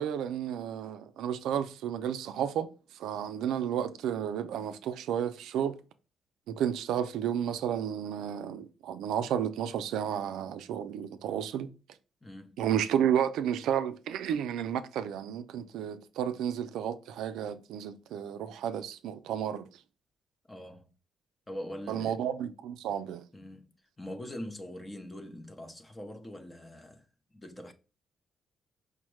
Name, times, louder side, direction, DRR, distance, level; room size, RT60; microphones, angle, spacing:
voice 1, 0.0-2.7 3.0-5.8 6.5-11.7 12.6-19.7 21.9-23.2, right 9 dB, 90° right, 0.4 m, -32 dB
voice 2, 12.2-12.6 20.5-20.9 21.5-22.3 23.3-27.7, left 1 dB, 15° left, 0.6 m, -43 dB
5.2 x 2.1 x 3.1 m
cardioid pair, 110°, 0 cm